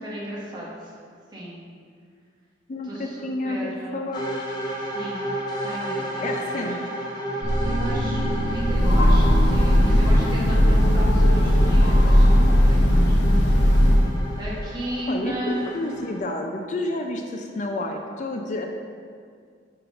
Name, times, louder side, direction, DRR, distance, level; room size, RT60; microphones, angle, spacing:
voice 1, 0.0-0.9 1.3-1.6 2.8-4.2 4.8-5.3 5.6-6.7 7.4-13.6 14.4-15.7, equal, 25° right, -6 dB, 1.3 m, -35 dB
voice 2, 2.7-4.3 6.2-6.8 15.1-18.7, left 2 dB, 40° left, 3 dB, 0.4 m, -30 dB
sound 1, 4.1-16.2, right 1 dB, 25° left, 0.8 m, -33 dB
sound 2, 7.4-13.4, right 1 dB, 60° right, 0.7 m, -28 dB
Train, 8.5-14.3, equal, 85° left, 0.8 m, -17 dB
4.9 x 4.8 x 5.0 m, 2.1 s
head